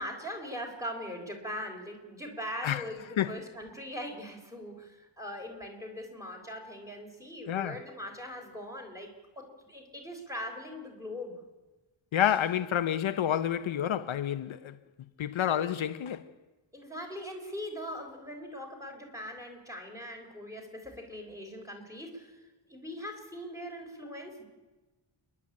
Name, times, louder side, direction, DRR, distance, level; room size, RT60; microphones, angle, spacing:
voice 1, 0.0-11.3 16.7-22.4 22.7-24.4, equal, 5° right, 3.9 m, -41 dB
voice 2, 7.5-7.8 12.1-14.7 15.2-16.2, left 10 dB, 75° left, 0.8 m, -29 dB
28.5 x 11.0 x 8.6 m
wide cardioid pair, 145°, 48 cm